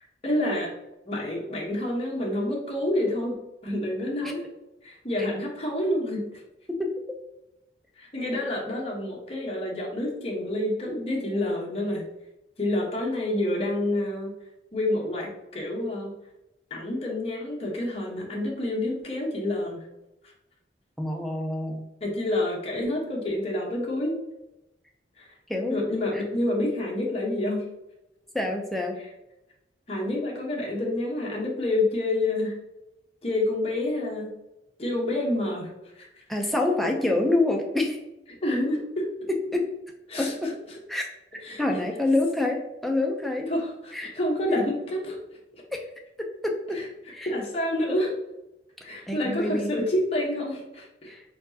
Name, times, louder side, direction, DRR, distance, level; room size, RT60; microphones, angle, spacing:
voice 1, 0.2-0.7 1.1-3.4 3.6-4.5 4.8-6.4 8.0-12.0 12.6-14.3 14.7-16.1 16.7-19.8 22.0-24.2 25.2-25.3 25.7-27.6 29.9-32.6 33.2-34.3 34.8-35.7 36.0-36.1 38.4-39.1 40.1-40.5 41.4-41.6 43.5-45.2 46.7-46.8 47.3-48.1 48.8-51.1, left 1 dB, 35° left, -2 dB, 1.1 m, -28 dB
voice 2, 21.0-21.8 25.5-25.9 26.1-26.2 28.3-29.0 36.3-38.0 39.5-39.6 40.2-40.5 40.9-41.1 41.6-43.5 43.9-44.1 45.7-45.8 46.4-46.8 47.1-47.3 49.1-49.7 51.1-51.2, left 2 dB, ahead, 1 dB, 0.5 m, -26 dB
4.4 x 4.0 x 2.8 m, 0.93 s
head